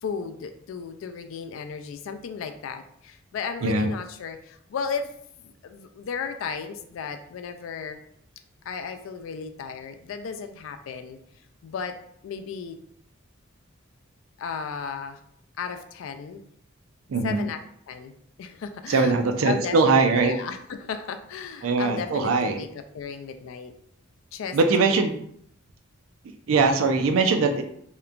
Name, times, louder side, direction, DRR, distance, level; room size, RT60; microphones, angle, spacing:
voice 1, 0.0-5.1 5.4-8.0 8.7-11.2 11.6-11.9 12.2-12.8 14.4-15.2 15.6-16.4 17.2-17.6 17.9-18.1 18.4-19.1 19.4-23.7 24.3-25.0, left 6 dB, 70° left, 8 dB, 0.3 m, -35 dB
voice 2, 3.6-3.9 17.1-17.5 18.9-20.3 21.6-22.6 24.5-25.2 26.5-27.6, right 4 dB, 85° right, 6 dB, 0.4 m, -21 dB
2.8 x 2.1 x 2.4 m, 0.68 s
head